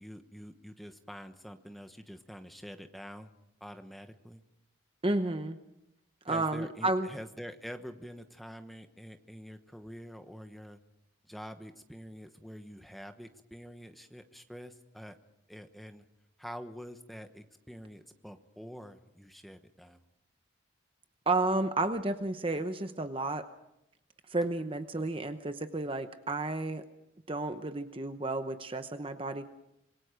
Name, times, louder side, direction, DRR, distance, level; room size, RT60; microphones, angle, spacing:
voice 1, 0.0-3.3 3.6-4.4 6.3-10.8 11.3-15.2 15.5-16.0 16.4-20.0, equal, ahead, 7 dB, 1.1 m, -46 dB
voice 2, 5.0-5.6 6.2-7.1 21.3-23.4 24.3-26.8 27.3-29.5, right 2 dB, 25° right, 8 dB, 0.9 m, -31 dB
26.5 x 21.5 x 5.1 m, 0.83 s
head